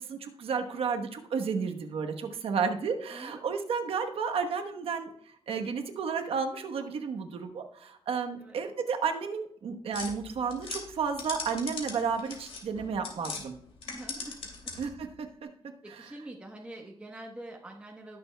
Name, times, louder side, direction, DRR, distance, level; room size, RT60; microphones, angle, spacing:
voice 1, 0.0-5.1 5.5-13.5 14.8-15.5 16.0-16.1, right 5 dB, 70° right, 5 dB, 1.1 m, -32 dB
voice 2, 3.1-3.4 8.4-8.6 13.9-14.4 15.8-18.2, right 1 dB, 10° right, 0 dB, 1.0 m, -45 dB
sound 1, 9.9-13.4 13.8-15.0, left 4 dB, 70° left, 2.4 m, -40 dB
19.0 x 6.9 x 2.2 m, 0.69 s
wide cardioid pair, 160°, 10 cm